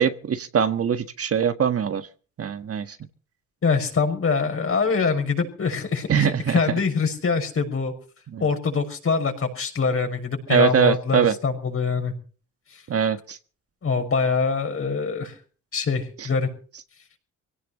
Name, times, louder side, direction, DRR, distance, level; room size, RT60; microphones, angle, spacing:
voice 1, 0.0-2.1 2.4-3.0 6.1-6.6 8.3-8.4 10.5-11.3 12.9-13.4, right 7 dB, 50° right, 9 dB, 1.5 m, -22 dB
voice 2, 3.6-7.9 8.4-12.1 12.7-12.8 13.8-15.3 15.7-16.5, left 5 dB, 45° left, 5 dB, 6.4 m, -24 dB
25.0 x 17.5 x 3.1 m, 0.40 s
cardioid pair, 90°, 30 cm